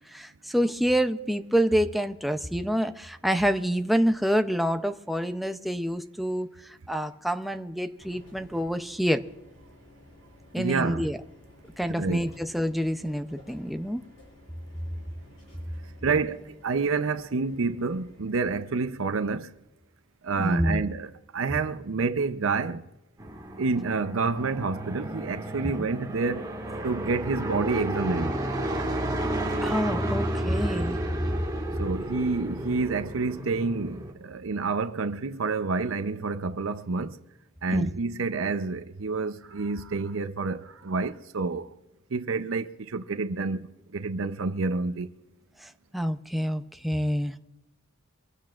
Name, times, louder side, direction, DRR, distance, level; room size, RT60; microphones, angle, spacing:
voice 1, 0.1-9.2 10.5-11.2 11.8-14.0 20.4-20.8 29.6-31.0 37.7-37.9 45.6-47.3, equal, ahead, 0.6 m, -27 dB
sound 1, 8.0-19.6, left 1 dB, 65° left, 7.2 m, -54 dB
voice 2, 10.6-11.0 11.9-12.2 16.0-19.5 20.2-22.8 23.6-26.5 26.8-28.4 31.8-37.2 37.6-41.7 42.1-45.1, right 4 dB, 85° right, 0.7 m, -28 dB
sound 2, 23.2-34.1, right 1 dB, 20° right, 1.8 m, -32 dB
25.0 x 16.5 x 2.5 m
head